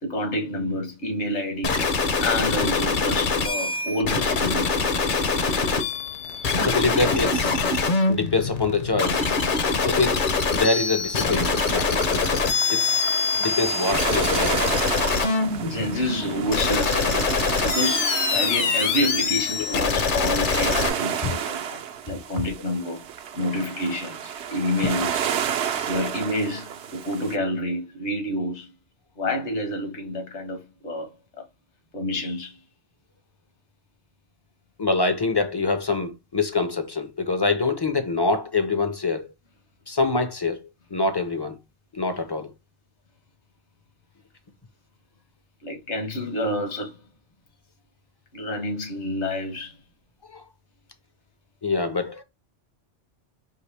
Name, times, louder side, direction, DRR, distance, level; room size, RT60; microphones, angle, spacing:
voice 1, 0.0-1.8 2.2-4.8 15.6-21.8 22.0-23.0 23.3-25.3 25.8-28.7 29.2-31.4 31.9-32.6 45.6-47.0 48.3-49.8, left 1 dB, 75° left, 1.6 m, -28 dB
sound 1, 1.6-20.9, left 4 dB, 50° left, 0.8 m, -24 dB
voice 2, 6.6-7.6 8.1-9.2 9.8-10.2 10.5-12.3 12.7-12.9 13.4-14.6 21.2-21.3 34.8-39.3 39.9-40.6 40.9-41.6 41.9-42.5 50.3-50.4 51.6-52.2, left 3 dB, 30° left, 0.5 m, -25 dB
sound 2, 11.3-27.4, right 8 dB, 75° right, 0.9 m, -32 dB
4.7 x 2.8 x 3.2 m
omnidirectional pair, 1.2 m